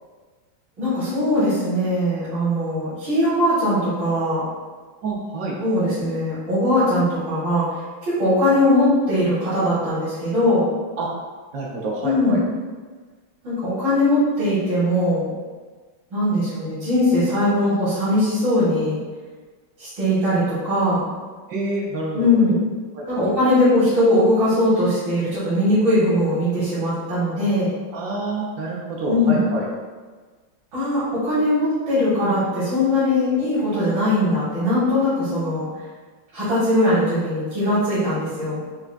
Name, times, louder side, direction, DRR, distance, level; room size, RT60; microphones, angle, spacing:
voice 1, 0.8-4.4 5.6-7.7 8.0-10.7 12.0-12.4 13.4-15.3 16.1-19.0 19.8-21.0 22.1-22.6 23.1-27.7 29.1-29.4 30.7-35.7 36.3-38.6, left 1 dB, 70° right, -13 dB, 2.3 m, -20 dB
voice 2, 5.0-5.6 11.0-11.1 11.5-12.4 21.5-22.4 22.9-23.3 27.9-29.7, right 2 dB, 90° right, -3 dB, 0.7 m, -27 dB
5.7 x 2.4 x 2.3 m, 1.4 s
omnidirectional pair, 2.2 m